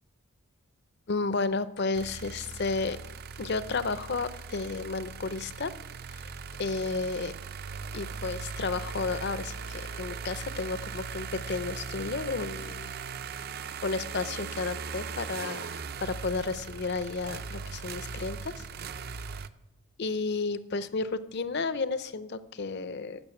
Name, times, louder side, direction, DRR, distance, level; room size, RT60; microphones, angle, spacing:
voice 1, 1.1-3.0 3.4-5.7 6.1-6.3 6.6-7.3 7.9-12.9 13.8-18.6 20.0-23.2, left 3 dB, 50° left, 14 dB, 0.6 m, -32 dB
sound 1, 1.9-19.5, right 5 dB, 45° right, 0.5 m, -39 dB
12.5 x 6.9 x 7.8 m, 0.93 s
head